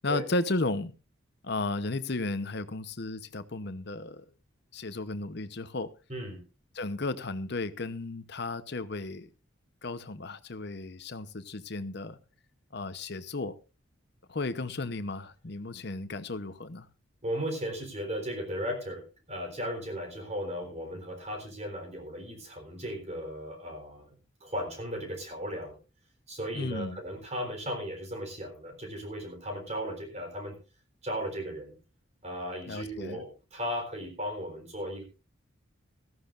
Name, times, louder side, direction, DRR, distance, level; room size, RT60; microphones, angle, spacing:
voice 1, 0.0-0.9 1.4-4.3 4.7-5.9 6.7-9.3 9.8-12.2 12.7-13.5 14.3-16.9 26.5-27.0 32.7-33.2, left 2 dB, 55° left, 0.9 m, -34 dB
voice 2, 6.1-6.4 17.2-24.1 24.4-25.7 26.3-30.6 31.0-31.7 32.2-35.0, equal, 30° right, 4.0 m, -36 dB
17.0 x 14.0 x 2.5 m
head